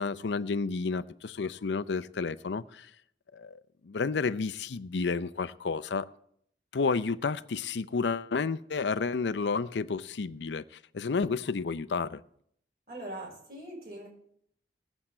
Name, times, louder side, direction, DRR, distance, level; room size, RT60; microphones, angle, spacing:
voice 1, 0.0-2.9 3.3-6.1 6.7-10.6 10.9-12.2, left 4 dB, 90° left, 0.5 m, -31 dB
voice 2, 12.9-14.1, right 1 dB, 60° right, 6.2 m, -41 dB
19.5 x 8.1 x 4.3 m
head